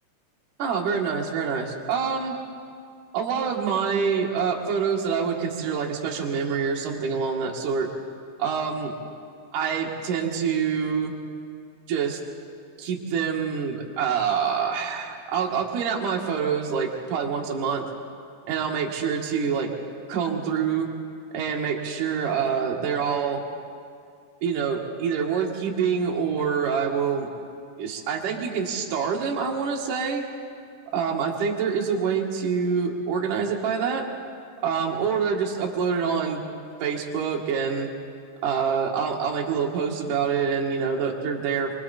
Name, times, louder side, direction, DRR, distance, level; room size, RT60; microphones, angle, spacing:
voice 1, 0.6-2.4 3.1-7.9 8.4-8.9 9.5-11.1 11.9-12.2 12.8-17.9 18.5-19.7 20.1-20.9 21.3-23.4 24.4-27.3 27.8-30.2 30.9-34.0 34.6-36.4 36.8-37.9 38.4-41.7, right 6 dB, 55° right, -1 dB, 3.0 m, -26 dB
27.0 x 23.5 x 4.3 m, 2.2 s
omnidirectional pair, 4.9 m